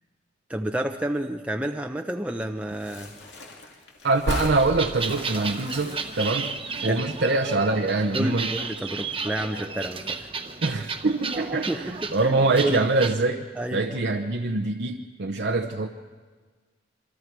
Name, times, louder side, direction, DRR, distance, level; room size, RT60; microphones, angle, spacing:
voice 1, 0.5-3.1 6.8-7.0 8.1-10.3 11.7-12.9 13.5-14.0, right 1 dB, 5° right, 3 dB, 0.7 m, -30 dB
sound 1, 2.7-8.3 8.6-8.7 8.9-9.8 10.1-10.3, left 1 dB, 70° left, 2.5 m, -37 dB
voice 2, 4.0-6.5 6.8-8.5 10.6-13.4 13.7-15.9, right 3 dB, 65° right, 2 dB, 0.8 m, -24 dB
sound 2, 4.6-13.1, right 5 dB, 30° right, 1.0 m, -33 dB
26.5 x 24.0 x 4.6 m, 1.5 s
head